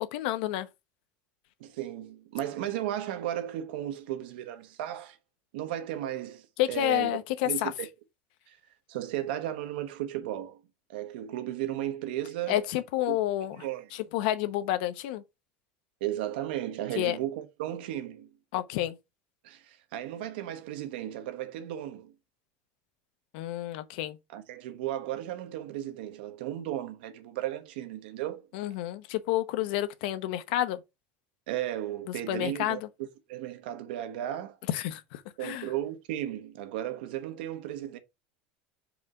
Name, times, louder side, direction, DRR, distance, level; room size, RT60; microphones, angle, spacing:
voice 1, 0.1-0.7 6.6-7.7 12.5-13.7 13.9-15.2 17.0-17.2 18.5-19.0 23.3-24.2 28.5-30.8 32.3-32.9 34.7-35.7, left 14 dB, 70° left, 0.9 m, -29 dB
voice 2, 1.6-5.2 5.5-7.1 7.4-7.9 8.5-8.6 8.9-10.6 10.9-12.7 13.1-13.2 13.5-13.9 16.0-18.3 19.4-22.1 24.3-28.5 31.5-34.6 35.4-38.0, right 12 dB, 85° right, 1.1 m, -35 dB
4.9 x 3.7 x 5.2 m
cardioid pair, 160°, 5 cm